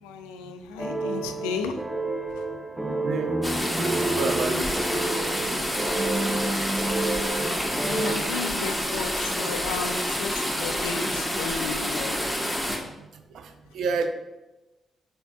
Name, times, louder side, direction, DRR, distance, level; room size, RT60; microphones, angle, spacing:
voice 1, 0.0-1.8 2.3-2.4 7.8-12.2, left 5 dB, 85° left, 7 dB, 0.3 m, -34 dB
sound 1, 0.8-8.2, right 2 dB, 20° right, 0.7 m, -29 dB
voice 2, 2.8-3.4 3.8-4.7 13.3-13.5 13.7-14.1, right 4 dB, 70° right, 8 dB, 0.4 m, -29 dB
sound 2, 3.4-12.8, equal, ahead, 1.4 m, -28 dB
5.3 x 4.2 x 2.3 m, 1.0 s
hypercardioid pair, 45°, 0 cm